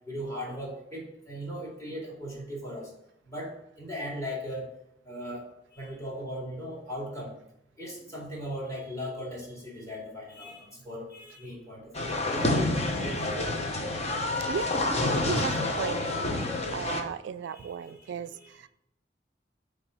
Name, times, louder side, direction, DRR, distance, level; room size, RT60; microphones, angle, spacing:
voice 1, 0.1-2.9 3.3-4.7 5.1-5.4 5.7-7.3 7.8-13.6 17.5-18.5, equal, 20° left, -3 dB, 2.4 m, -38 dB
sound 1, 11.9-17.0, left 2 dB, 35° left, 0.9 m, -28 dB
voice 2, 15.2-16.2 16.7-18.7, right 7 dB, 75° right, 13 dB, 0.3 m, -35 dB
7.8 x 3.4 x 6.3 m, 0.77 s
head